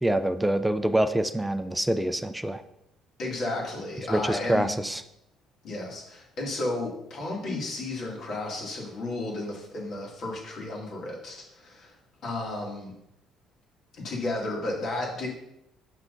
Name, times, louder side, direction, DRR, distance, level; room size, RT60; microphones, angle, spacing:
voice 1, 0.0-2.6 4.1-5.0, right 1 dB, 5° right, 8 dB, 0.4 m, -25 dB
voice 2, 3.2-4.9 5.6-11.9 12.2-12.9 13.9-15.3, left 2 dB, 55° left, -2 dB, 2.2 m, -33 dB
7.3 x 6.0 x 2.6 m, 0.82 s
cardioid pair, 115°, 0 cm